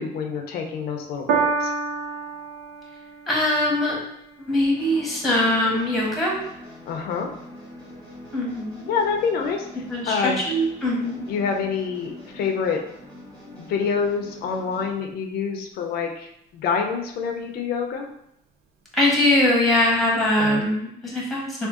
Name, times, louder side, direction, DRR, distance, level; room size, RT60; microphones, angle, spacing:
voice 1, 0.0-1.7 6.9-7.3 8.9-9.7 10.1-10.4 11.3-12.8 13.6-18.1 20.4-20.6, left 5 dB, 65° left, 3 dB, 0.5 m, -26 dB
Piano, 1.3-7.9 8.7-8.8, right 5 dB, 70° right, 0.4 m, -31 dB
voice 2, 3.3-4.0 4.4-6.4 8.3-8.9 9.9-11.2 18.9-21.7, left 1 dB, ahead, -4 dB, 1.0 m, -22 dB
sound 1, 4.7-14.9, left 1 dB, 25° right, 1.4 m, -43 dB
3.6 x 2.4 x 2.4 m, 0.77 s
cardioid pair, 110°, 17 cm